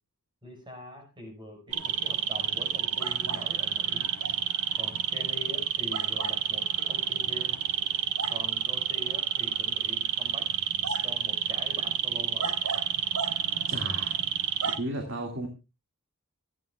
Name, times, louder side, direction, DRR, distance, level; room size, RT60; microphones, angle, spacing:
voice 1, 0.4-4.1 4.8-7.6 8.3-10.5 11.0-12.5, equal, 20° right, 3 dB, 4.7 m, -44 dB
sound 1, 1.7-14.8, right 9 dB, 85° right, 1.3 m, -29 dB
voice 2, 13.7-14.3 14.6-15.5, right 1 dB, 55° right, 3 dB, 2.1 m, -35 dB
25.5 x 8.9 x 2.3 m, 0.27 s
head